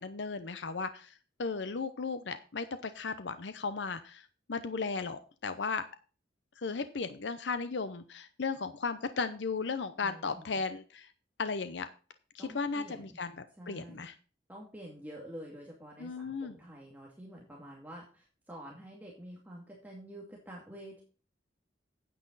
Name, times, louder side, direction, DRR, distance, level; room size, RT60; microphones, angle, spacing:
voice 1, 0.0-5.8 6.6-11.1 11.4-11.9 12.3-14.2 16.0-16.5, left 4 dB, 70° left, 11 dB, 0.7 m, -36 dB
voice 2, 10.0-10.6 12.4-13.2 13.6-14.0 14.5-21.0, equal, 10° right, -3 dB, 2.3 m, -48 dB
9.8 x 8.7 x 4.0 m, 0.37 s
head